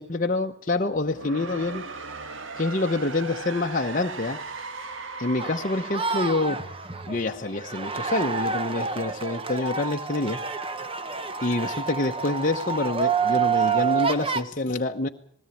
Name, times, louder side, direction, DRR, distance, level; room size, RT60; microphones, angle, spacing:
voice 1, 0.0-1.8 2.6-4.4 5.2-6.6 7.1-10.4 11.4-15.1, left 2 dB, 35° left, 2 dB, 1.0 m, -27 dB
sound 1, 0.9-7.8, right 3 dB, 60° right, 1.6 m, -38 dB
sound 2, 5.4-14.4, right 6 dB, 25° right, 1.0 m, -28 dB
20.0 x 17.5 x 8.6 m, 0.67 s
head